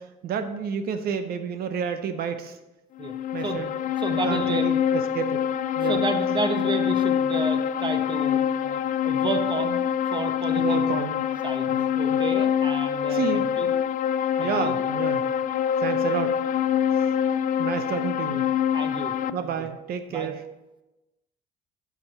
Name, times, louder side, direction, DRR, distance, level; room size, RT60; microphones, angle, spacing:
voice 1, 0.0-2.6 3.3-3.7 4.1-5.5 5.8-6.0 10.6-11.2 11.7-11.8 12.1-12.2 13.1-13.5 14.4-15.2 15.8-16.4 17.6-18.5 19.3-20.4, right 7 dB, 65° right, 9 dB, 0.8 m, -30 dB
sound 1, 3.0-19.3, left 9 dB, 50° left, 0.4 m, -25 dB
voice 2, 4.0-4.7 5.8-9.8 10.1-10.9 11.4-13.7 14.4-14.8 18.7-19.7 20.1-20.3, right 4 dB, 30° right, 7 dB, 1.0 m, -31 dB
9.6 x 6.1 x 4.5 m, 1.0 s
cardioid pair, 110°, 17 cm